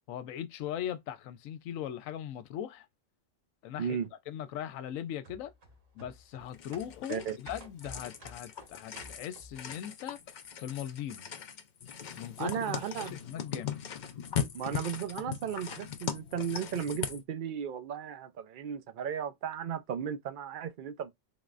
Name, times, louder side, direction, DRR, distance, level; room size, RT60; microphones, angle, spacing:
voice 1, 0.1-2.9 3.6-4.0 4.3-5.5 5.9-10.2 10.6-11.3 12.2-12.9 13.3-13.8, left 10 dB, 80° left, 1.0 m, -39 dB
sound 1, 5.2-9.7 10.1-10.2, equal, 50° right, 1.2 m, -52 dB
sound 2, 6.5-17.2, left 8 dB, 60° left, 0.4 m, -39 dB
voice 2, 12.4-13.1 14.5-21.1, right 8 dB, 70° right, 0.4 m, -35 dB
3.9 x 3.0 x 2.4 m
omnidirectional pair, 1.4 m